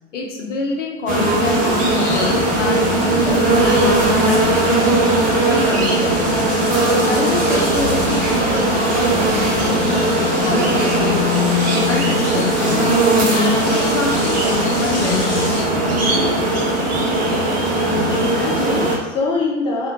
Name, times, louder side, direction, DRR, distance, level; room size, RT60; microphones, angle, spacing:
voice 1, 0.1-5.2 5.5-6.4 6.8-11.5 11.9-13.0 13.3-15.9, left 3 dB, 75° left, -1 dB, 0.7 m, -27 dB
sound 1, 1.1-19.0, right 1 dB, 25° right, 0.7 m, -18 dB
sound 2, 1.5-15.6, left 2 dB, 35° left, 1.2 m, -30 dB
voice 2, 17.7-19.9, left 3 dB, 15° left, -2 dB, 0.4 m, -24 dB
2.9 x 2.4 x 2.9 m, 1.1 s
figure-of-eight pair, 85°, 36 cm